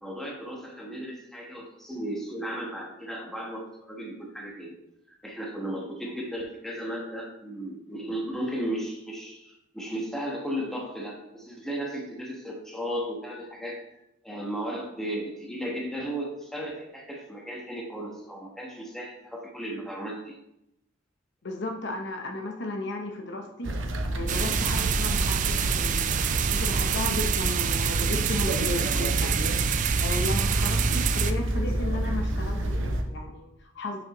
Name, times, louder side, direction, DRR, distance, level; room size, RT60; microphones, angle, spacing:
voice 1, 0.0-4.7 5.1-13.8 14.2-20.3, equal, ahead, -2 dB, 1.2 m, -35 dB
voice 2, 21.4-23.8 24.1-29.4 30.0-34.0, left 2 dB, 60° left, 3 dB, 0.8 m, -34 dB
sound 1, 23.6-33.0, right 1 dB, 75° right, 0.8 m, -29 dB
sound 2, 24.3-31.3, right 7 dB, 40° right, 0.3 m, -26 dB
7.2 x 6.1 x 3.0 m, 0.84 s
head